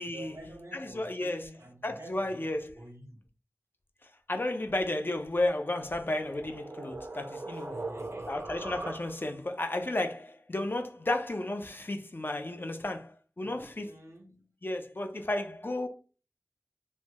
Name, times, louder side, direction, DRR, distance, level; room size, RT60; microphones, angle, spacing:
voice 1, 0.1-3.2 7.5-8.5 13.4-14.5, right 1 dB, 85° right, 0.8 m, -49 dB
voice 2, 0.7-1.5 1.8-2.7 4.0-7.8 8.3-13.9 14.6-15.9, left 1 dB, 50° left, 0.5 m, -33 dB
sound 1, 5.7-9.5, right 2 dB, 50° right, 0.5 m, -41 dB
3.1 x 2.2 x 2.8 m
wide cardioid pair, 40°, 5 cm